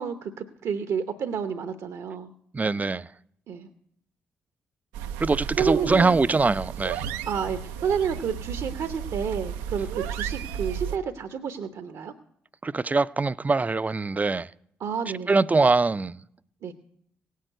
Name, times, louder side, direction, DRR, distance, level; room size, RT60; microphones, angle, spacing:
voice 1, 0.0-2.3 3.5-3.7 5.6-6.1 7.3-12.1 14.8-15.4 16.6-16.7, right 7 dB, 65° right, 0.8 m, -30 dB
voice 2, 2.5-3.1 5.2-7.1 12.6-14.5 15.3-16.2, right 3 dB, 25° right, 0.4 m, -23 dB
sound 1, 4.9-11.0, right 8 dB, 80° right, 0.4 m, -34 dB
17.5 x 6.5 x 7.8 m
hypercardioid pair, 40°, 6 cm